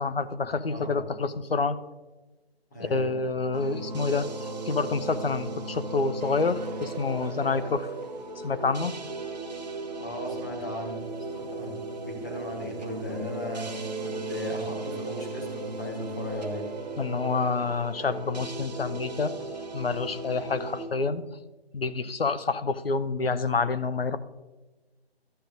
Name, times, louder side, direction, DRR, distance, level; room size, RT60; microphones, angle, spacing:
voice 1, 0.0-1.8 2.9-7.9 8.4-8.9 17.0-19.3 19.7-21.2 21.7-24.2, left 4 dB, 60° left, 12 dB, 0.6 m, -28 dB
voice 2, 0.7-1.1 2.7-3.2 7.4-7.7 10.0-16.7, left 1 dB, 15° left, -1 dB, 1.3 m, -37 dB
sound 1, 3.5-20.9, right 3 dB, 40° right, 1.0 m, -36 dB
12.5 x 7.7 x 2.5 m, 1.2 s
figure-of-eight pair, 155°, 32 cm